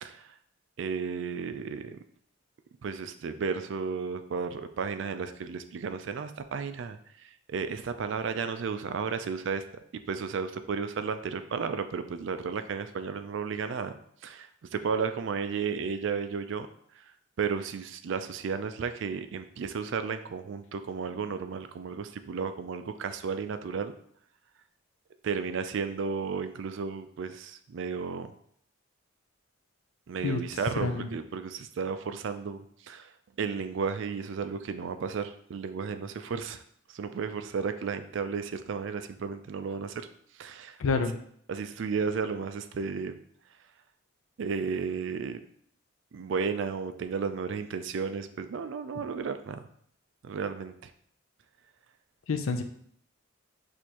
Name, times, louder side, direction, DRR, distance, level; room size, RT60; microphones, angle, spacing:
voice 1, 0.0-0.3 0.8-2.0 2.8-9.6 9.9-14.0 14.2-16.7 17.4-23.9 25.2-28.3 30.1-33.1 33.4-36.6 36.9-40.1 40.4-40.8 41.5-43.2 44.4-45.4 46.1-49.6 50.2-50.9, right 5 dB, 65° right, 10 dB, 0.3 m, -33 dB
voice 2, 30.8-31.1 40.8-41.1 52.3-52.6, left 4 dB, 85° left, 7 dB, 0.5 m, -28 dB
6.3 x 2.6 x 2.9 m, 0.66 s
head